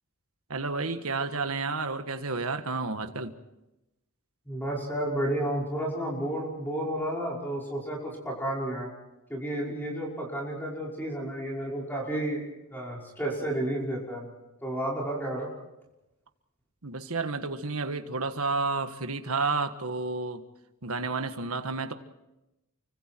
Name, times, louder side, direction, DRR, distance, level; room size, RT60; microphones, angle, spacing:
voice 1, 0.5-3.3 16.8-20.4 20.8-21.9, right 3 dB, 75° right, 8 dB, 1.6 m, -31 dB
voice 2, 4.5-8.9 9.3-12.4 12.7-14.3 14.6-15.5, right 1 dB, 10° left, -3 dB, 5.6 m, -31 dB
29.5 x 25.0 x 4.6 m, 0.94 s
head